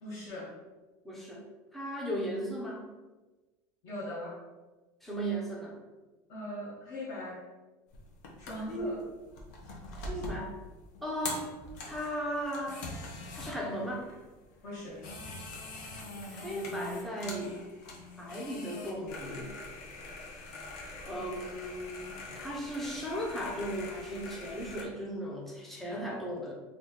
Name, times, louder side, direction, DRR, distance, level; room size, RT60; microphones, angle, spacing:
voice 1, 0.0-0.5 3.8-4.3 6.3-7.4 8.4-9.0 14.6-15.0, left 1 dB, 40° left, -3 dB, 0.7 m, -40 dB
voice 2, 1.0-1.4 1.7-2.8 5.0-5.8 8.5-9.0 10.0-10.5 11.0-11.4 11.9-12.8 13.3-14.0 16.3-17.6 18.2-19.5 21.0-26.5, equal, ahead, -3 dB, 0.5 m, -36 dB
sound 1, 7.9-24.8, left 2 dB, 85° left, 0.8 m, -44 dB
2.9 x 2.6 x 3.6 m, 1.2 s
cardioid pair, 180°, 9 cm